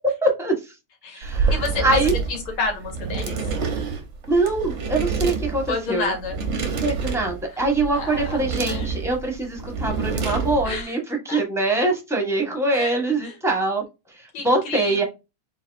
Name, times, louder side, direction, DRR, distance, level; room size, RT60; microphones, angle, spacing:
voice 1, 0.2-0.7 1.1-1.5 1.8-2.1 4.3-6.1 6.8-13.8 14.1-15.0, right 2 dB, ahead, 2 dB, 0.9 m, -23 dB
sound 1, 1.2-10.8, right 5 dB, 50° right, 0.8 m, -28 dB
voice 2, 1.5-3.4 5.7-6.4 7.5-7.6 7.9-8.4 8.7-9.0 10.6-10.9 11.3-11.4 12.7-13.3 14.3-15.0, left 4 dB, 85° left, 2 dB, 2.4 m, -30 dB
4.7 x 3.9 x 2.5 m, 0.25 s
omnidirectional pair, 2.3 m